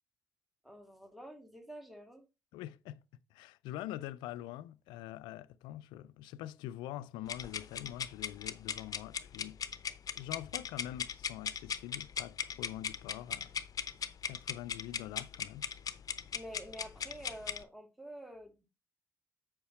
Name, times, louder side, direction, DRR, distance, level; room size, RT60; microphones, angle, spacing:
voice 1, 0.6-2.2 16.3-18.6, equal, ahead, 2.5 m, -48 dB
voice 2, 2.5-3.0 3.3-9.6 10.2-13.6 14.2-15.7, left 13 dB, 75° left, 0.4 m, -44 dB
sound 1, 7.3-17.6, left 7 dB, 50° left, 0.7 m, -39 dB
8.3 x 5.2 x 4.2 m
hypercardioid pair, 45°, 8 cm